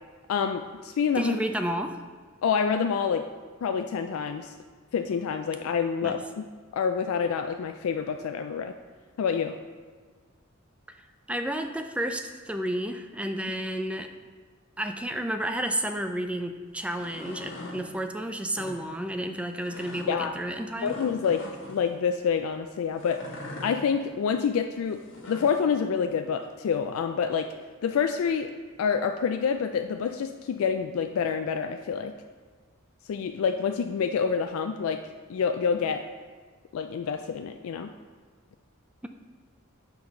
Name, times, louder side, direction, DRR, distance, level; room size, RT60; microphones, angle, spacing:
voice 1, 0.3-1.4 2.4-3.2 3.6-4.5 4.9-6.5 6.7-8.7 9.2-9.6 20.1-20.3 20.8-21.4 21.7-23.2 23.6-27.5 27.8-28.5 28.8-32.2 33.1-35.0 35.3-36.0 36.7-37.9, left 6 dB, 80° left, 7 dB, 0.3 m, -27 dB
voice 2, 1.2-2.0 6.0-6.2 10.9-11.0 11.3-14.1 14.8-21.0, right 1 dB, 5° right, 6 dB, 0.3 m, -31 dB
sound 1, 16.9-17.8 18.4-18.8 19.7-20.1 20.8-21.8 23.0-23.7 24.9-25.6, left 2 dB, 65° left, 1.3 m, -41 dB
6.5 x 4.0 x 5.7 m, 1.5 s
head